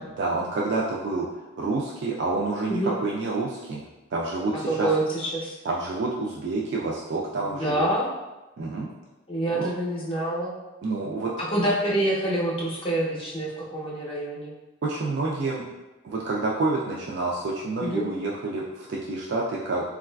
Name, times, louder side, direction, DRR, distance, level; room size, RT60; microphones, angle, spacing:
voice 1, 0.2-3.8 4.1-4.9 5.6-7.9 8.6-8.9 9.5-9.7 10.8-11.3 14.8-15.6 16.0-19.8, right 3 dB, 55° right, -4 dB, 0.3 m, -28 dB
voice 2, 4.7-5.5 7.4-8.1 9.3-10.6 11.4-14.5 17.8-18.1, right 1 dB, 25° left, -4 dB, 0.6 m, -26 dB
3.8 x 2.3 x 2.2 m, 1.1 s
head